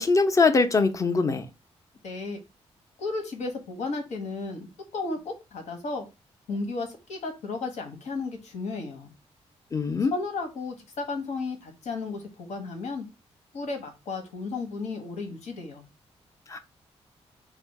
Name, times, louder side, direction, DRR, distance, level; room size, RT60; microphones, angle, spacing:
voice 1, 0.0-1.5 9.7-10.1 16.5-16.6, left 4 dB, 30° left, 0.5 m, -22 dB
voice 2, 2.0-2.4 3.0-6.1 6.5-9.1 10.1-13.1 13.5-15.9, left 3 dB, 90° left, 1.3 m, -34 dB
4.4 x 2.4 x 4.6 m
wide cardioid pair, 165°, 11 cm